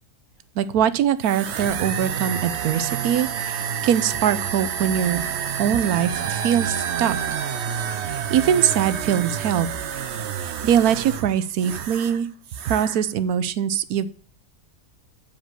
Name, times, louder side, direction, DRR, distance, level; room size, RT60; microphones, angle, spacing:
voice 1, 0.6-5.2 5.6-7.2 8.1-9.7 10.4-12.3 12.7-14.2, right 9 dB, 90° right, 14 dB, 1.2 m, -22 dB
sound 1, 1.2-12.2 12.5-13.0, right 8 dB, 55° right, 0.9 m, -29 dB
8.9 x 5.1 x 7.6 m, 0.42 s
omnidirectional pair, 1.6 m